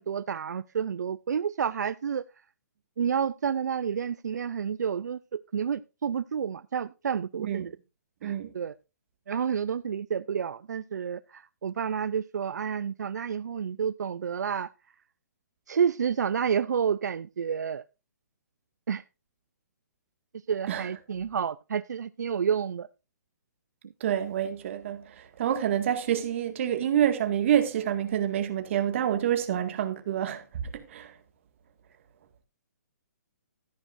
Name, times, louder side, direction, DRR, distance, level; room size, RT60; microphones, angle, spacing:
voice 1, 0.0-2.2 3.0-5.2 5.5-7.7 8.2-8.7 9.3-14.7 15.7-17.8 18.9-19.0 20.5-22.9, right 7 dB, 80° right, 0.4 m, -30 dB
voice 2, 24.0-30.4 30.7-31.1, right 10 dB, 45° right, 1.9 m, -27 dB
13.5 x 10.5 x 2.6 m
hypercardioid pair, 155°, 9 cm